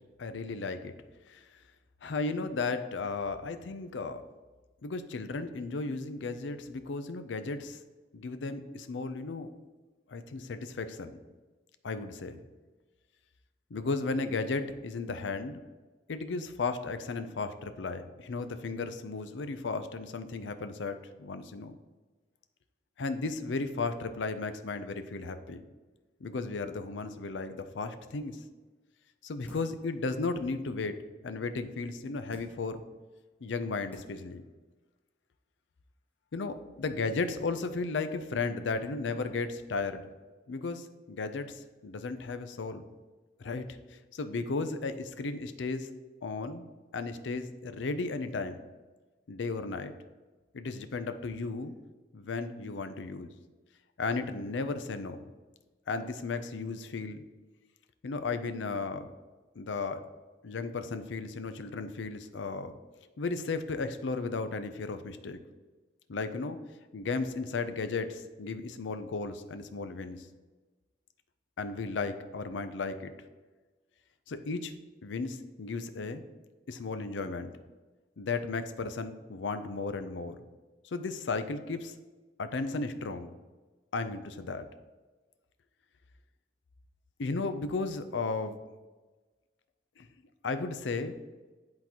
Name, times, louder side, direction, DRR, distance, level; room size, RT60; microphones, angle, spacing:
voice 1, 0.2-0.9 1.3-1.4 2.0-4.2 4.8-7.8 8.1-9.5 10.1-11.2 11.8-12.4 13.7-15.6 16.1-21.7 23.0-25.6 26.2-28.4 29.2-31.0 31.2-32.8 33.4-34.4 36.3-40.0 40.5-42.8 43.4-43.7 44.1-45.9 46.2-46.6 46.9-48.6 49.3-49.9 50.5-51.7 52.1-53.3 54.0-55.2 55.9-57.2 58.0-59.1 59.6-60.0 60.4-62.8 63.2-65.4 66.1-66.6 66.9-70.2 71.6-73.1 74.3-74.7 75.0-76.2 76.7-77.5 78.2-80.4 80.8-81.9 82.4-83.3 83.9-84.7 87.2-88.6 90.0-90.1 90.4-91.2, left 3 dB, 85° left, 10 dB, 0.5 m, -35 dB
sound 1, 29.5-29.9 30.4-30.5 32.3-32.7 33.4-33.5 33.9-34.3 34.7-34.8, equal, 10° left, 1.0 m, -54 dB
10.5 x 3.8 x 2.9 m, 1.3 s
head